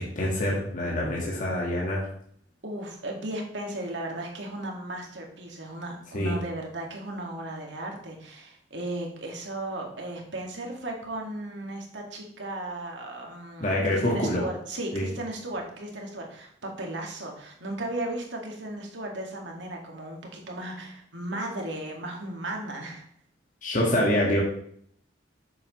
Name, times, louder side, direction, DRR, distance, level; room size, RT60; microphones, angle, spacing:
voice 1, 0.0-2.0 6.1-6.4 13.6-14.4 14.9-15.1 23.6-24.4, left 1 dB, 45° left, -4 dB, 1.7 m, -26 dB
voice 2, 2.6-23.0, right 1 dB, 75° right, 0 dB, 2.0 m, -36 dB
9.2 x 7.2 x 3.2 m, 0.65 s
head